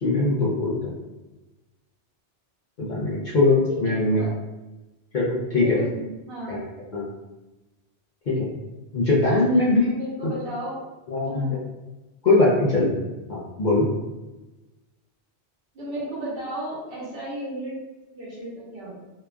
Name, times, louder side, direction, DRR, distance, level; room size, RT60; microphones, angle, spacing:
voice 1, 0.0-0.9 2.8-4.2 5.1-5.7 6.5-6.6 6.9-7.1 8.3-8.5 8.9-9.9 11.1-11.6 12.2-12.9 13.3-13.8, left 2 dB, 55° left, -7 dB, 0.6 m, -21 dB
voice 2, 3.7-4.3 5.6-6.6 9.5-10.8 11.2-11.6 15.7-17.8 18.1-19.0, right 1 dB, 55° right, -6 dB, 1.1 m, -34 dB
2.9 x 2.3 x 2.2 m, 1.1 s
omnidirectional pair, 1.2 m